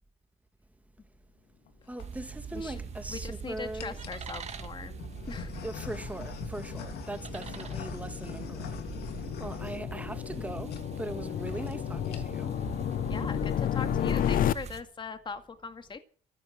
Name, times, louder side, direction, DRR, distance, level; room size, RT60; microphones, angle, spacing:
sound 1, 1.7-2.1 2.8-3.3 3.8-4.2 5.0-10.4 10.7-10.9 11.2-11.3 11.5-11.7 12.0-12.5, left 8 dB, 75° left, 3.0 m, -43 dB
voice 1, 1.9-4.0 5.6-8.9 9.4-12.6, right 2 dB, 10° right, 1.8 m, -40 dB
sound 2, 2.0-14.8, right 6 dB, 40° right, 2.0 m, -42 dB
voice 2, 3.1-4.9 5.3-5.5 7.5-7.6 13.1-16.0, left 5 dB, 30° left, 2.0 m, -40 dB
sound 3, 3.4-14.5, left 11 dB, 55° left, 0.7 m, -34 dB
14.5 x 10.5 x 8.6 m
cardioid pair, 110°, 17 cm